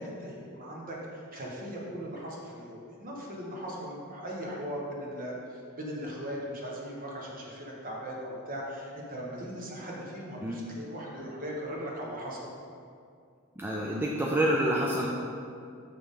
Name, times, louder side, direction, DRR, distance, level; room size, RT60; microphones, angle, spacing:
voice 1, 0.0-12.5, equal, 40° right, -3 dB, 1.3 m, -39 dB
voice 2, 13.6-15.1, right 1 dB, 10° right, -3 dB, 0.4 m, -27 dB
6.7 x 6.1 x 3.7 m, 2.4 s
head